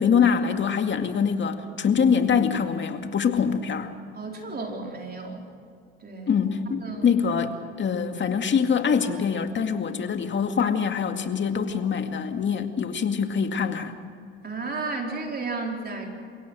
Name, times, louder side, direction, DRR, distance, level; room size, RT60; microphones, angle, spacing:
voice 1, 0.0-3.9 6.3-13.9, left 6 dB, 40° left, 6 dB, 2.2 m, -24 dB
voice 2, 4.2-5.4 6.0-6.3 6.8-7.0 14.4-16.1, right 3 dB, 30° right, 1 dB, 4.3 m, -33 dB
29.5 x 17.0 x 6.4 m, 2.4 s
supercardioid pair, 85°, 30 cm